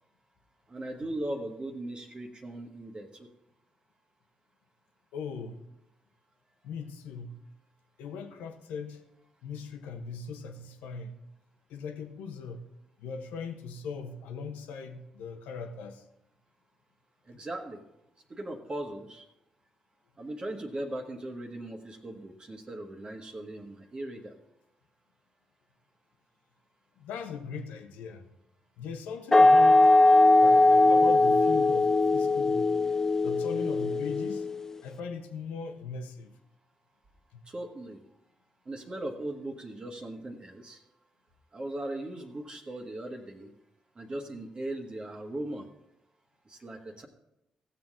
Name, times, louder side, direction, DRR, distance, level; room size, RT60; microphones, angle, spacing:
voice 1, 0.7-3.3 17.3-17.8 18.3-19.2 20.2-24.3 37.5-38.0 38.6-40.8 41.5-43.5 43.9-45.7 46.5-47.1, right 1 dB, 35° right, 3 dB, 1.4 m, -38 dB
voice 2, 5.1-5.6 6.6-7.4 8.0-9.0 9.4-11.2 11.7-12.6 13.0-16.0 27.0-28.3 28.8-29.8 30.4-32.7 33.2-34.5 34.8-36.4 37.3-37.4, left 5 dB, 75° left, 5 dB, 1.0 m, -39 dB
sound 1, 29.3-34.7, left 2 dB, 20° left, 0.5 m, -21 dB
15.5 x 7.4 x 3.7 m, 0.86 s
hypercardioid pair, 45°, 3 cm